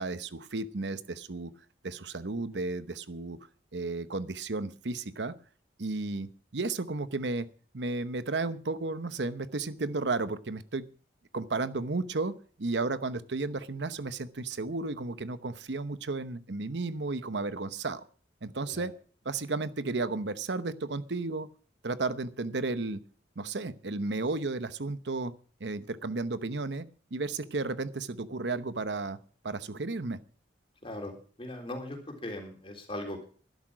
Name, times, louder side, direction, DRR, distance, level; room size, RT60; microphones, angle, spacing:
voice 1, 0.0-1.5 1.8-3.4 3.7-5.3 5.8-7.5 7.7-10.8 11.3-18.0 18.4-18.9 19.2-21.5 21.8-23.0 23.4-25.3 25.6-26.9 27.1-29.2 29.4-30.2, right 3 dB, 80° right, 13 dB, 0.9 m, -33 dB
voice 2, 30.8-33.3, left 1 dB, 30° left, 3 dB, 3.6 m, -39 dB
12.5 x 11.5 x 6.2 m, 0.42 s
head